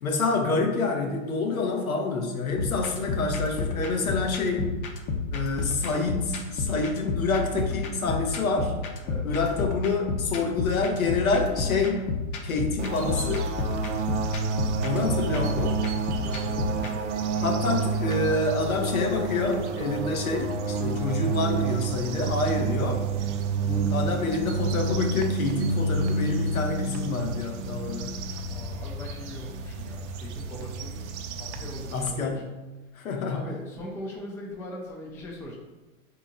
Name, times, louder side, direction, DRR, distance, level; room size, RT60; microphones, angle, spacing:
voice 1, 0.0-4.7 5.3-8.7 9.2-12.1 12.4-13.5 14.8-15.8 17.4-23.1 23.6-28.2 31.9-32.5 32.9-33.4, left 3 dB, 85° left, 3 dB, 0.9 m, -27 dB
sound 1, 2.6-16.9, left 4 dB, 40° left, 0.7 m, -31 dB
sound 2, 12.8-32.1, right 4 dB, 60° right, 0.6 m, -29 dB
voice 2, 16.2-17.1 28.5-31.0 31.4-32.2 33.3-35.6, left 1 dB, 5° left, -2 dB, 0.4 m, -40 dB
4.2 x 2.9 x 3.7 m, 1.1 s
hypercardioid pair, 110°, 41 cm